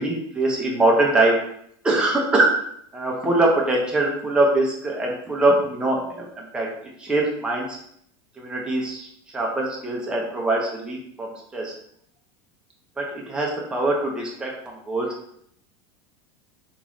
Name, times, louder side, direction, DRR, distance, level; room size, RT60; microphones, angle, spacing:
voice 1, 0.0-1.4 1.8-2.5 2.9-6.7 7.0-7.8 8.4-9.1 9.3-11.7 13.0-15.1, right 2 dB, 5° right, -2 dB, 0.5 m, -23 dB
3.0 x 2.9 x 2.5 m, 0.69 s
supercardioid pair, 145°, 14 cm